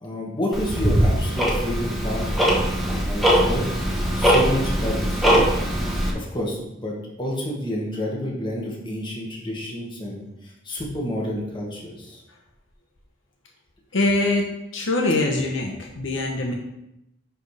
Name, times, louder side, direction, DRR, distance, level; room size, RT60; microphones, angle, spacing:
voice 1, 0.0-2.6 2.8-3.7 3.9-5.5 6.1-10.2 10.7-12.2, left 1 dB, 25° left, -3 dB, 1.7 m, -29 dB
Tick-tock, 0.5-6.1, equal, ahead, 1.3 m, -21 dB
voice 2, 13.9-14.5 14.7-16.5, left 2 dB, 70° left, 1 dB, 1.0 m, -23 dB
10.0 x 4.4 x 3.4 m, 0.85 s
head